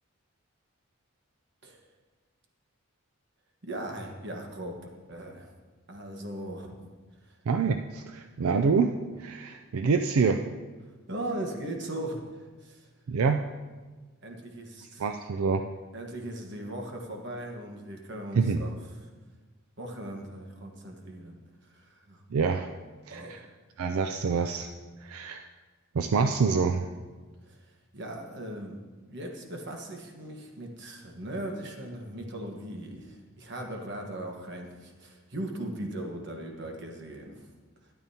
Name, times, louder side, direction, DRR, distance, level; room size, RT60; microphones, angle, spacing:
voice 1, 3.6-5.5 5.9-6.8 7.2-7.3 11.1-12.9 14.2-15.0 15.9-18.8 19.8-21.4 21.6-22.2 23.1-23.4 27.4-28.8 29.0-37.5, right 1 dB, 55° right, 2 dB, 1.3 m, -39 dB
voice 2, 7.5-10.4 13.1-13.4 15.0-15.6 18.3-18.6 22.3-22.7 23.1-23.4 23.8-24.7 25.0-25.5 25.9-26.9, right 5 dB, 85° right, 7 dB, 0.4 m, -26 dB
12.5 x 10.5 x 2.8 m, 1.3 s
head